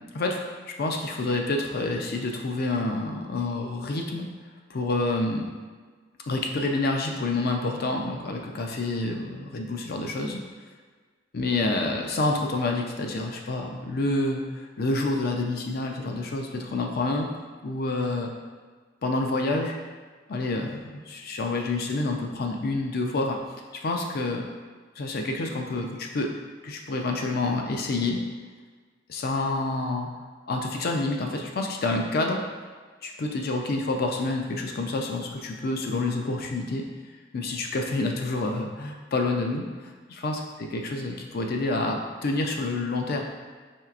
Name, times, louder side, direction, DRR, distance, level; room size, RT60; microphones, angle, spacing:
voice 1, 0.8-4.3 4.7-5.4 6.3-10.4 11.3-17.3 17.6-18.3 19.0-19.8 20.3-23.4 23.7-24.4 25.0-26.3 26.6-28.2 29.1-30.1 30.5-32.4 33.0-36.8 37.3-43.2, left 2 dB, 55° left, 2 dB, 0.5 m, -28 dB
4.4 x 3.2 x 2.4 m, 1.5 s
head